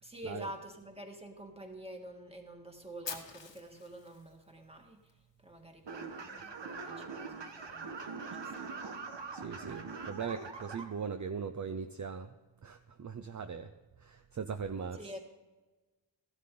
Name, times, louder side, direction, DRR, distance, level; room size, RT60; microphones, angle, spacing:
voice 1, 0.0-8.7 14.9-15.2, right 1 dB, 15° right, 2 dB, 1.8 m, -48 dB
Fire, 3.0-5.1, left 6 dB, 90° left, 1.4 m, -45 dB
sound 1, 5.9-10.8, right 4 dB, 85° right, 1.2 m, -43 dB
voice 2, 9.3-12.4 12.6-13.7 14.0-15.2, right 6 dB, 45° right, 8 dB, 0.6 m, -40 dB
14.5 x 11.5 x 3.8 m, 1.2 s
wide cardioid pair, 105°, 42 cm